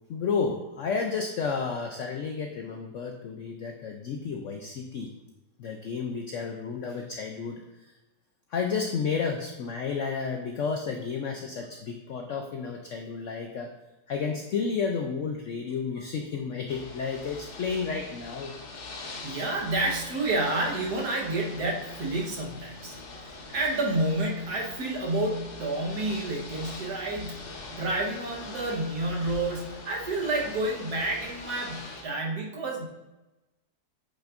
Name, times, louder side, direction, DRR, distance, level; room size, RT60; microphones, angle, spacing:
voice 1, 0.1-5.1 5.6-7.6 8.5-13.7 14.1-18.5, left 5 dB, 90° left, 3 dB, 0.6 m, -31 dB
Ocean / Boat Water vehicle, 16.7-32.0, left 3 dB, 55° left, 0.9 m, -43 dB
voice 2, 19.2-32.9, right 2 dB, 60° right, -2 dB, 1.7 m, -30 dB
8.6 x 5.5 x 2.5 m, 1.0 s
omnidirectional pair, 2.0 m